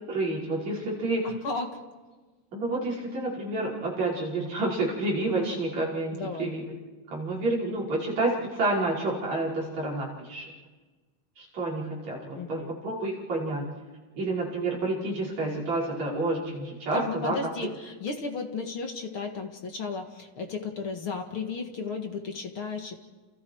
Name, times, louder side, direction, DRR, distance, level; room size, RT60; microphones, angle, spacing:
voice 1, 0.1-1.3 2.5-6.6 7.1-10.5 11.4-13.7 14.2-17.4, right 2 dB, 45° right, -5 dB, 6.4 m, -29 dB
voice 2, 1.2-1.8 6.1-6.5 12.4-12.7 16.9-23.0, left 4 dB, 45° left, 4 dB, 2.0 m, -34 dB
29.5 x 29.5 x 4.7 m, 1.3 s
omnidirectional pair, 4.3 m